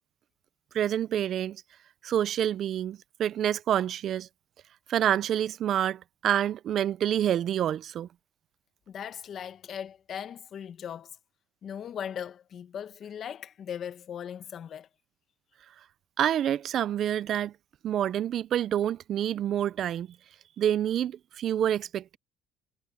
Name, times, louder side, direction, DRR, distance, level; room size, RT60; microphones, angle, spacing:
voice 1, 0.7-1.6 2.0-4.3 4.9-8.1 16.2-17.5 17.8-20.1 20.6-22.2, right 10 dB, 50° right, 0.5 m, -27 dB
voice 2, 8.9-11.1 11.6-14.9, left 8 dB, 45° left, 1.3 m, -38 dB
cardioid pair, 125°, 0 cm